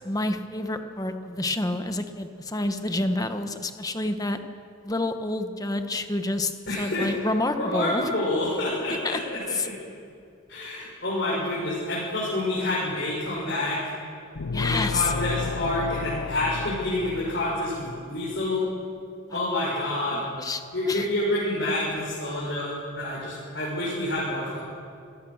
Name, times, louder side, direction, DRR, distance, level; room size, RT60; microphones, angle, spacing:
voice 1, 0.0-4.4 4.8-6.5 6.8-8.0 9.0-9.2 9.6-9.7 14.5-15.0 20.1-20.6 20.9-21.0, left 2 dB, 15° left, 7 dB, 1.2 m, -28 dB
voice 2, 6.7-7.1 7.6-9.7 10.5-13.8 14.6-18.7 19.3-20.3 20.7-24.6, left 1 dB, 55° left, -7 dB, 6.3 m, -28 dB
sound 1, 14.4-18.1, left 4 dB, 75° left, 0.5 m, -32 dB
27.0 x 18.0 x 6.5 m, 2.3 s
head